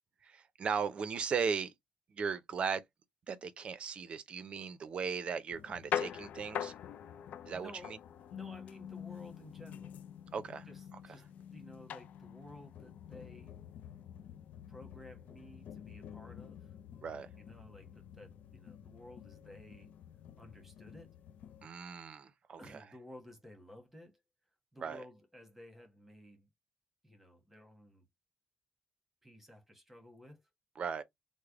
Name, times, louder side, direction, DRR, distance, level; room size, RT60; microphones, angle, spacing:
voice 1, 0.2-1.7 2.1-2.8 3.3-6.7 7.5-8.0 10.3-10.7 17.0-17.3 21.6-22.8 24.8-25.0 30.8-31.0, right 6 dB, 45° right, 0.5 m, -37 dB
sound 1, 5.5-21.7, left 9 dB, 75° left, 0.3 m, -45 dB
voice 2, 7.5-7.9 8.3-9.9 10.7-13.5 14.7-16.7 17.4-19.9 20.4-21.2 22.6-24.2 24.7-26.5 27.0-28.0 29.2-30.4, left 1 dB, 5° right, 1.1 m, -54 dB
3.3 x 2.1 x 3.5 m
wide cardioid pair, 150°, 3 cm